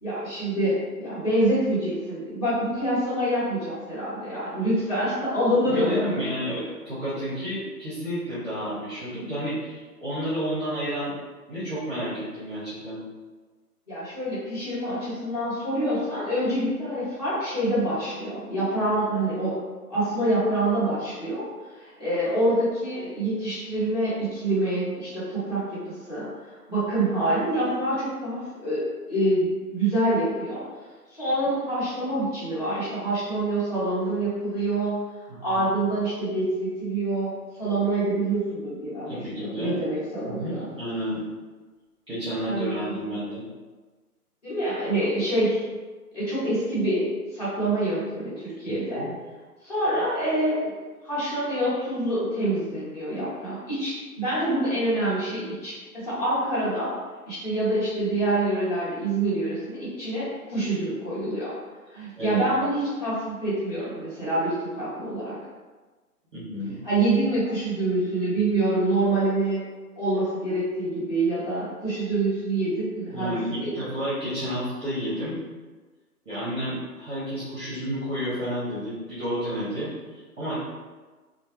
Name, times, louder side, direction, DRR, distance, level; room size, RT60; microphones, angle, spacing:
voice 1, 0.0-5.9 13.9-19.6 19.9-21.4 21.7-28.8 29.1-30.6 31.2-34.9 35.4-40.6 42.4-43.2 44.4-45.6 46.1-47.1 47.3-49.0 49.6-50.7 51.0-56.9 57.3-61.5 61.9-65.4 66.8-69.6 70.0-73.7, right 1 dB, 25° left, -11 dB, 0.9 m, -26 dB
voice 2, 5.6-11.1 11.5-13.0 35.3-35.6 39.1-39.8 40.3-41.2 42.1-43.4 49.0-49.1 62.2-62.4 66.3-66.8 73.1-75.4 76.2-80.6, equal, 20° right, -12 dB, 0.6 m, -31 dB
2.1 x 2.0 x 2.9 m, 1.3 s
figure-of-eight pair, 140°, 47 cm